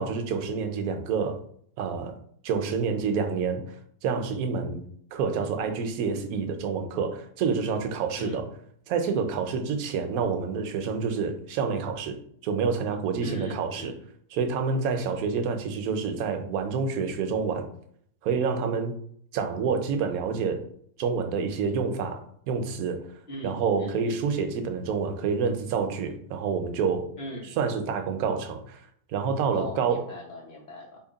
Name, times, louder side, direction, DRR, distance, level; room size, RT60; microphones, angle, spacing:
voice 1, 0.0-1.4 1.8-2.2 2.4-4.8 5.1-8.5 8.9-13.9 14.3-17.7 18.2-19.0 19.3-20.7 21.0-23.1 23.4-27.1 27.6-28.8 29.1-30.1, right 5 dB, 80° right, 1.0 m, -28 dB
voice 2, 13.2-13.9 23.3-24.2 27.2-27.5 29.5-31.0, left 1 dB, 35° left, 0.9 m, -39 dB
2.8 x 2.8 x 3.8 m
omnidirectional pair, 1.5 m